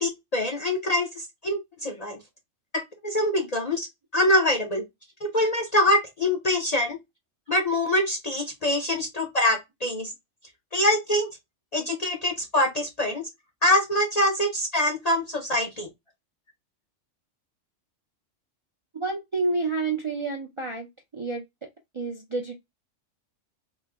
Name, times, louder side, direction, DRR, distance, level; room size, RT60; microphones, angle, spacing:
voice 1, 0.0-2.2 2.7-3.9 4.1-4.8 5.2-7.0 7.5-10.1 10.7-11.3 11.7-13.3 13.6-15.9, left 1 dB, 45° left, 0.5 m, -24 dB
voice 2, 19.0-21.4 21.9-22.5, right 3 dB, 45° right, 0.4 m, -29 dB
3.1 x 2.0 x 3.4 m
omnidirectional pair, 1.3 m